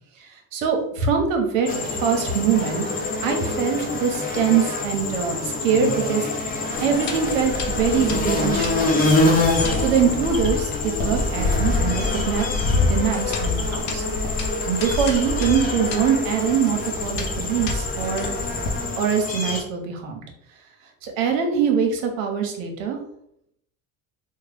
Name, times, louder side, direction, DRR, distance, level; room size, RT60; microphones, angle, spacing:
voice 1, 0.5-2.8 3.2-6.3 6.8-9.1 9.8-14.0 14.7-18.3 19.0-20.2 21.0-23.0, right 7 dB, 90° right, 3 dB, 0.9 m, -23 dB
sound 1, 1.7-19.6, left 2 dB, 20° left, 0.7 m, -26 dB
sound 2, 6.7-18.8, left 3 dB, 80° left, 0.8 m, -28 dB
3.6 x 2.1 x 3.3 m, 0.73 s
supercardioid pair, 105°, 38 cm